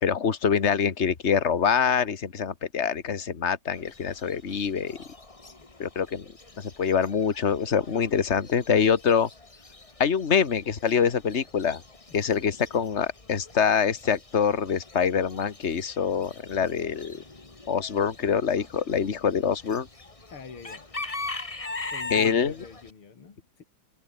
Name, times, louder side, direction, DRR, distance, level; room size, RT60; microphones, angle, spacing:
voice 1, 0.0-5.0 5.8-6.3 6.6-9.3 10.0-11.8 12.1-17.2 17.7-19.9 22.1-22.5, left 7 dB, 35° left, 1.8 m, -25 dB
Chicken rooster / Bird, 3.7-22.9, left 3 dB, 15° left, 1.5 m, -42 dB
voice 2, 20.3-20.9 21.9-23.6, left 5 dB, 75° left, 3.8 m, -44 dB
omnidirectional pair, 2.4 m